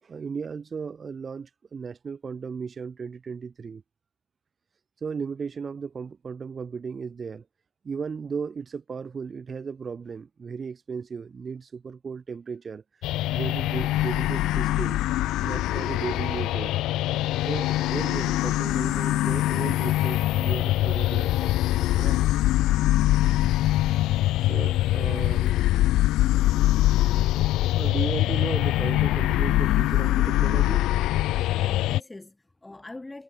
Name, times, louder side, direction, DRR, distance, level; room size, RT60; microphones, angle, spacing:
voice 1, 0.0-3.8 5.0-7.5 7.8-12.8 13.3-15.1 15.4-16.7 17.5-21.5 21.9-22.2 23.1-23.2 24.5-25.7 26.7-26.8 27.5-30.9 31.2-31.4, right 5 dB, 35° right, 4.5 m, -35 dB
sound 1, 13.0-32.0, left 15 dB, 90° left, 0.5 m, -23 dB
voice 2, 31.3-33.2, left 2 dB, 10° left, 7.1 m, -43 dB
cardioid pair, 130°, 0 cm